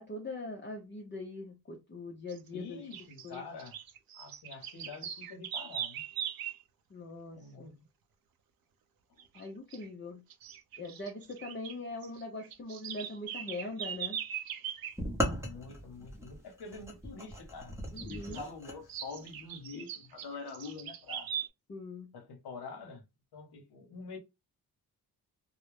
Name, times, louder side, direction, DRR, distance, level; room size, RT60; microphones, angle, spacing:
voice 1, 0.0-2.8 3.2-3.4 6.9-7.7 9.3-10.2 10.8-14.2 17.9-18.4 21.7-22.1, left 2 dB, 30° left, 0.6 m, -42 dB
sound 1, 2.3-2.5 2.9-6.6 9.2-9.5 9.7-9.9 10.3-11.7 12.0-15.0 18.0-18.4 18.9-21.5, right 9 dB, 65° right, 0.5 m, -40 dB
voice 2, 2.5-3.8 4.1-6.0 7.3-7.8 9.2-9.3 15.4-21.3 22.1-23.0 23.3-24.2, left 4 dB, 75° left, 0.8 m, -46 dB
sound 2, 15.0-18.8, left 1 dB, 5° right, 0.7 m, -37 dB
2.3 x 2.0 x 3.1 m
cardioid pair, 95°, 39 cm